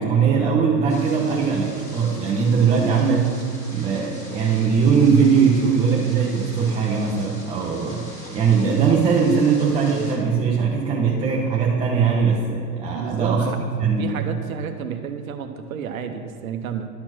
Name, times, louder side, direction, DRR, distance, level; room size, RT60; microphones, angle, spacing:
voice 1, 0.0-3.3 3.7-8.1 8.3-13.5 13.8-14.3, right 6 dB, 10° right, -3 dB, 0.5 m, -20 dB
sound 1, 0.9-10.1, equal, 15° left, 2.1 m, -43 dB
voice 2, 12.9-13.6 14.0-16.9, right 7 dB, 60° right, 6 dB, 0.8 m, -31 dB
11.0 x 4.4 x 6.0 m, 2.2 s
hypercardioid pair, 105°, 48 cm